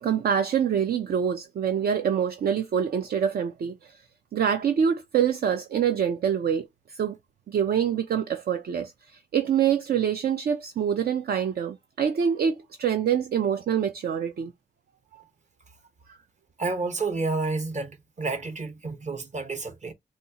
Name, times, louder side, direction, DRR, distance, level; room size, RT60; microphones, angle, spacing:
voice 1, 0.0-4.0 4.3-7.2 7.5-14.5 15.1-15.2 16.1-16.2, right 8 dB, 60° right, 0.5 m, -25 dB
voice 2, 16.6-19.9, right 3 dB, 40° right, 1.1 m, -30 dB
4.1 x 2.4 x 2.8 m
cardioid pair, 85°, 18 cm